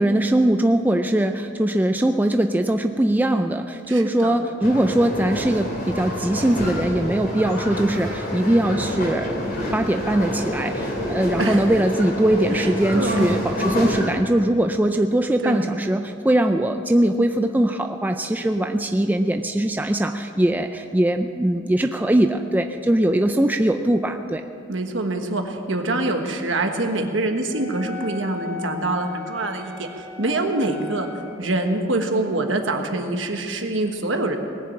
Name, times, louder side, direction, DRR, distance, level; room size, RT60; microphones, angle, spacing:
voice 1, 0.0-9.3 9.7-24.4, right 1 dB, 10° right, 6 dB, 0.4 m, -21 dB
voice 2, 3.9-4.3 11.4-11.7 12.5-13.3 15.4-15.7 24.7-31.1 31.4-34.4, right 2 dB, 70° right, 5 dB, 1.4 m, -25 dB
sound 1, 4.6-14.1, equal, 45° left, 3.1 m, -27 dB
Wind instrument woodwind instrument, 27.5-31.4, left 4 dB, 75° left, 1.7 m, -37 dB
19.5 x 7.1 x 8.9 m, 2.5 s
head